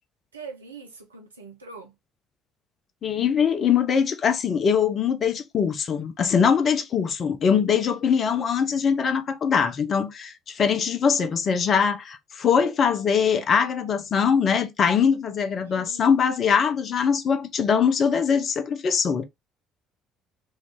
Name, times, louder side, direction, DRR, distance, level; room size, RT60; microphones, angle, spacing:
voice 1, 0.3-1.9 15.6-16.1, right 4 dB, 85° right, 0.4 m, -42 dB
voice 2, 3.0-19.2, left 7 dB, 45° left, 0.5 m, -22 dB
2.6 x 2.3 x 3.7 m
figure-of-eight pair, 50°, 0 cm